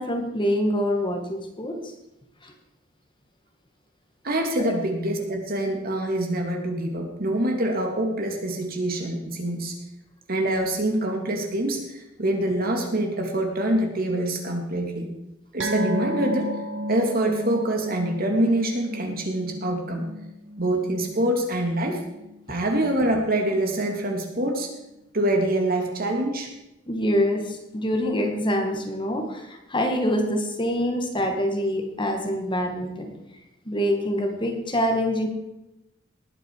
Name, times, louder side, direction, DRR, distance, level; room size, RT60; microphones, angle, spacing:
voice 1, 0.0-1.9 2.4-2.5 4.6-4.7 26.9-33.1 33.7-35.3, equal, 25° left, 3 dB, 2.0 m, -25 dB
voice 2, 4.2-9.8 10.3-15.1 15.5-16.5 16.9-20.0 20.6-22.0 22.5-24.7 25.1-26.5, right 1 dB, 50° right, 2 dB, 2.7 m, -25 dB
sound 1, 15.6-22.4 22.7-22.9 23.3-23.4, left 1 dB, 70° right, 1.5 m, -33 dB
19.5 x 9.0 x 4.9 m, 0.92 s
head